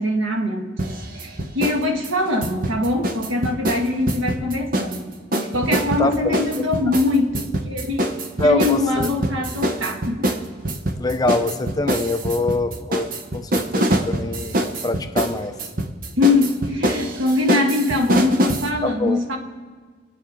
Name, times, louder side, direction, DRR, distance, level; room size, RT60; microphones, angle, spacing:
voice 1, 0.0-8.1 8.5-10.2 16.2-19.4, left 2 dB, 80° right, 3 dB, 1.6 m, -22 dB
sound 1, 0.8-1.8 2.0-5.0 5.3-18.7, right 1 dB, 45° right, 0.9 m, -24 dB
voice 2, 8.4-9.1 11.0-13.1 13.3-14.6 14.8-15.5 18.8-19.2, left 2 dB, 20° left, 6 dB, 0.7 m, -23 dB
25.5 x 8.6 x 3.8 m, 1.5 s
head